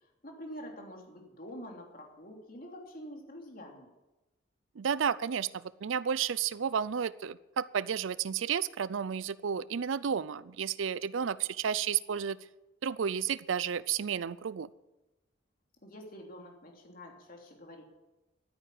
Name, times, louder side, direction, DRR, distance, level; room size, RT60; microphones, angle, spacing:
voice 1, 0.0-3.9 15.8-17.9, equal, 45° left, 1 dB, 3.1 m, -47 dB
voice 2, 4.8-12.4 12.8-14.7, right 7 dB, 80° right, 18 dB, 0.5 m, -32 dB
13.0 x 9.4 x 8.6 m, 1.0 s
head